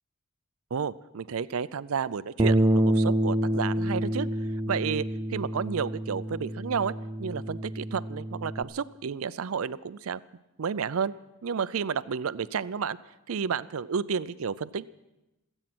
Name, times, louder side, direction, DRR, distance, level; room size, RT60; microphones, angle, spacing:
voice 1, 0.7-4.3 4.7-5.0 5.3-6.9 7.2-10.2 10.6-11.1 11.4-13.0 13.3-14.8, right 6 dB, 70° right, 17 dB, 0.5 m, -31 dB
Bass guitar, 2.4-8.6, right 1 dB, 20° right, 0.6 m, -27 dB
26.5 x 8.9 x 6.1 m, 0.96 s
head